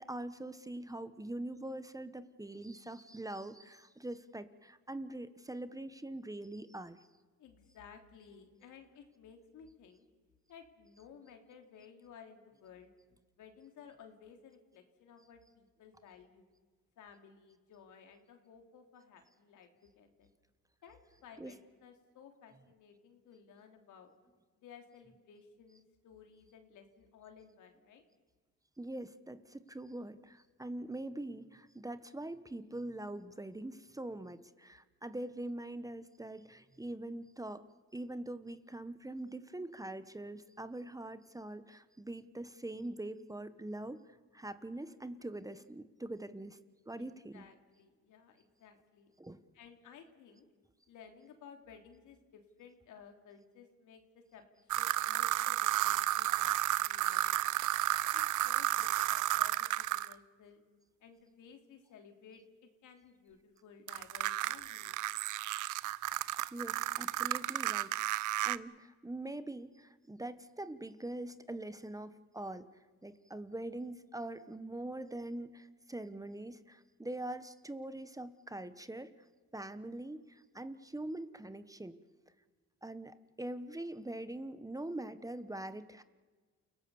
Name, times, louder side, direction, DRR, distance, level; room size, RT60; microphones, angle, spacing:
voice 1, 0.0-7.1 21.4-21.5 28.8-37.7 37.9-46.6 46.9-47.5 49.2-49.4 66.5-72.7 73.0-79.1 79.5-82.0 82.8-86.0, right 1 dB, 10° right, 12 dB, 1.1 m, -43 dB
voice 2, 7.4-10.0 10.5-12.9 13.4-16.5 17.0-20.3 20.8-24.1 24.6-28.0 47.0-49.1 49.5-50.4 50.9-57.6 58.1-60.6 61.0-65.2, left 7 dB, 80° left, 5 dB, 3.3 m, -57 dB
sound 1, 54.7-60.1 63.9-68.6, right 15 dB, 80° right, 0.7 m, -32 dB
29.0 x 17.5 x 7.1 m, 1.4 s
cardioid pair, 90°, 30 cm